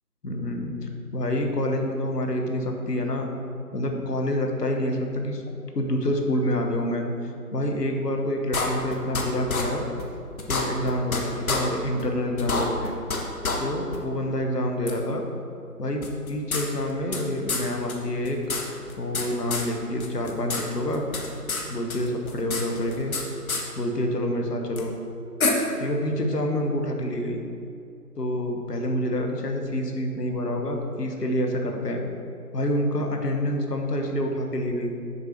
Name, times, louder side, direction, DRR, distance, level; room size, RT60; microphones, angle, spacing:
voice 1, 0.2-3.3 3.7-5.4 5.7-9.8 10.5-12.9 13.6-15.3 15.8-18.4 19.0-21.0 21.7-23.1 23.7-24.9 25.8-27.4 28.2-32.0 32.5-34.9, left 1 dB, 75° left, 2 dB, 1.4 m, -27 dB
sound 1, 8.5-9.2 9.5-9.6 10.0-10.1 10.4-11.2 11.5-11.6 12.0-12.1 12.4-13.2 13.4-13.6 13.9-14.0 14.9-15.0 16.0-17.2 17.5-17.6 17.9-18.0 18.2-19.3 19.5-19.7 20.0-20.6 20.9-21.6 21.9-23.2 23.5-23.6 24.8-24.9 25.4-25.5, left 4 dB, 60° left, 1.3 m, -27 dB
6.9 x 4.6 x 6.1 m, 2.6 s
figure-of-eight pair, 155°, 48 cm